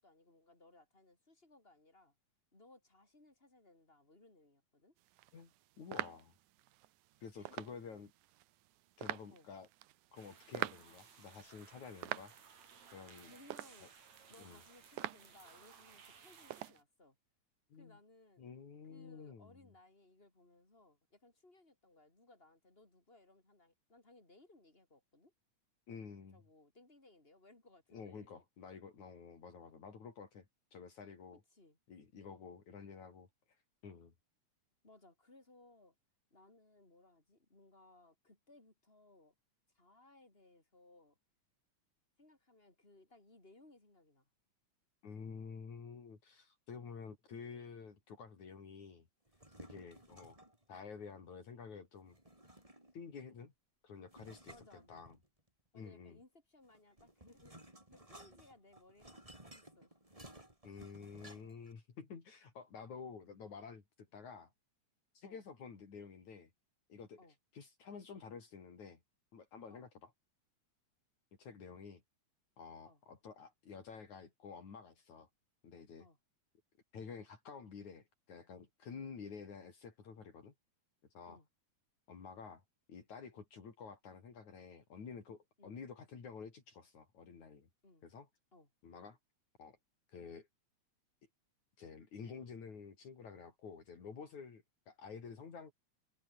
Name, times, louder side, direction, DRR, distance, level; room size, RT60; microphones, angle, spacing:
voice 1, 0.0-2.2 2.5-4.9 7.4-7.6 9.3-9.5 13.3-13.9 14.3-17.2 17.7-18.5 18.9-25.3 26.3-28.4 31.5-31.8 34.8-36.0 36.3-39.3 39.7-41.2 42.2-44.3 50.7-50.9 54.5-55.0 55.7-57.5 57.9-59.1 59.5-60.0 65.2-65.4 67.2-67.4 69.7-69.9 72.9-73.0 76.0-76.2 81.3-81.5 85.6-85.8 87.8-88.1 88.5-88.7, left 2 dB, 15° left, 5.3 m, -63 dB
sound 1, 5.0-16.8, right 16 dB, 85° right, 2.3 m, -47 dB
voice 2, 5.8-6.3 7.2-8.1 9.0-9.7 10.1-12.4 12.9-13.3 14.4-14.6 17.7-18.0 18.4-19.5 25.9-26.4 27.9-30.5 30.7-31.4 31.9-33.3 33.8-34.1 45.0-49.1 49.6-50.4 50.7-52.2 52.9-53.5 53.8-54.6 54.9-55.2 55.7-56.2 60.6-64.5 65.2-66.5 66.9-67.2 67.5-69.0 69.3-70.1 71.4-72.0 72.6-75.3 75.6-76.1 76.9-80.5 81.1-81.4 82.1-82.6 82.9-87.7 88.0-88.3 88.8-89.2 89.6-89.8 90.1-90.5 91.8-95.7, left 5 dB, 75° left, 5.3 m, -50 dB
sound 2, 10.2-16.7, right 6 dB, 70° right, 4.6 m, -60 dB
sound 3, 49.3-50.6 52.1-53.1 54.1-55.5 56.6-61.7, right 1 dB, 10° right, 5.2 m, -57 dB
omnidirectional pair, 3.4 m